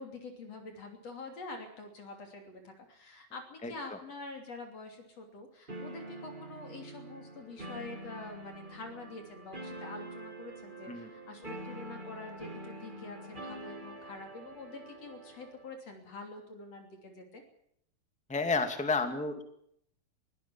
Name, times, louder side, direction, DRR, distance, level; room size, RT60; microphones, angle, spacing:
voice 1, 0.0-17.4, left 3 dB, 45° left, 4 dB, 3.9 m, -46 dB
sound 1, 5.7-15.8, right 1 dB, 20° right, 1.6 m, -46 dB
voice 2, 18.3-19.4, left 3 dB, 5° left, 7 dB, 1.5 m, -31 dB
23.0 x 16.5 x 7.3 m, 0.70 s
omnidirectional pair, 4.0 m